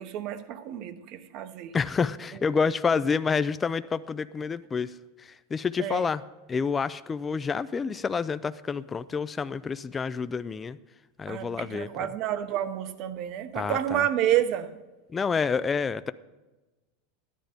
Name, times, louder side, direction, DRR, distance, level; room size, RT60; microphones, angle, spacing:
voice 1, 0.0-1.8 2.3-2.4 5.8-6.1 11.3-14.8, right 11 dB, 45° right, 0.9 m, -29 dB
voice 2, 1.7-4.9 5.2-6.2 6.5-10.8 11.2-11.9 13.6-14.0 15.1-16.1, left 5 dB, 15° left, 0.3 m, -28 dB
13.5 x 10.0 x 5.1 m
supercardioid pair, 145°, 0 cm